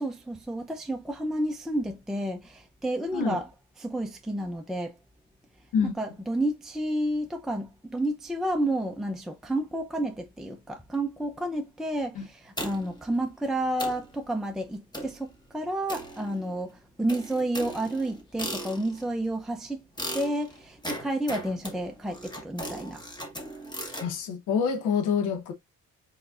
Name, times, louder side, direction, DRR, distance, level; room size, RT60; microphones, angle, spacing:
voice 1, 0.0-3.5 3.8-4.9 5.8-19.9 20.1-23.0, right 1 dB, ahead, 0.6 m, -30 dB
sound 1, 12.6-13.0 13.5-13.6 13.8-14.1 14.9-15.2 15.9-16.6 17.1-19.1 20.0-24.1, equal, 15° left, 1.9 m, -38 dB
voice 2, 24.0-25.5, left 6 dB, 90° left, 1.0 m, -27 dB
4.9 x 4.2 x 2.4 m
cardioid pair, 90°, 30 cm